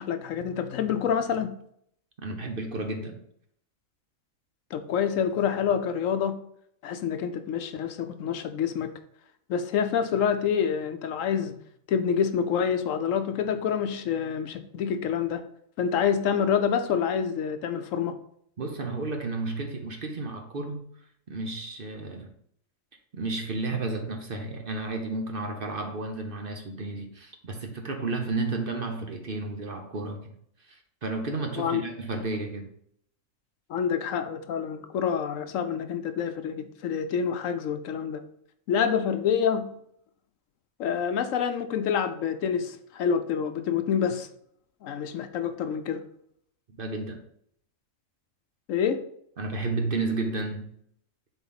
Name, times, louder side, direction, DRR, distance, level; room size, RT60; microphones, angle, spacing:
voice 1, 0.0-1.5 4.7-6.4 6.8-8.9 9.5-11.6 11.9-15.4 15.8-18.1 31.6-31.8 33.7-38.2 38.7-39.7 40.8-44.3 44.8-46.0 48.7-49.0, left 7 dB, 75° left, 1.0 m, -27 dB
voice 2, 2.2-3.2 18.6-20.9 21.3-22.3 23.1-30.3 30.6-32.7 46.8-47.2 49.4-50.7, right 3 dB, 45° right, 1.0 m, -32 dB
7.1 x 4.5 x 4.0 m
omnidirectional pair, 1.4 m